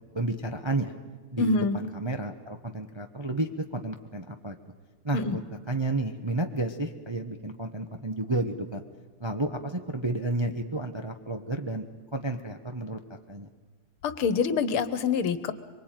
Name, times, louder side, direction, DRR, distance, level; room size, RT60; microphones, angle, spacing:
voice 1, 0.1-0.9 1.3-4.6 5.0-5.4 5.7-8.8 9.2-11.9 12.1-13.5, right 2 dB, 25° right, 5 dB, 0.6 m, -31 dB
voice 2, 1.4-1.8 5.1-5.4 14.0-15.5, left 5 dB, 85° left, 13 dB, 2.1 m, -26 dB
24.0 x 24.0 x 9.1 m, 1.4 s
omnidirectional pair, 2.3 m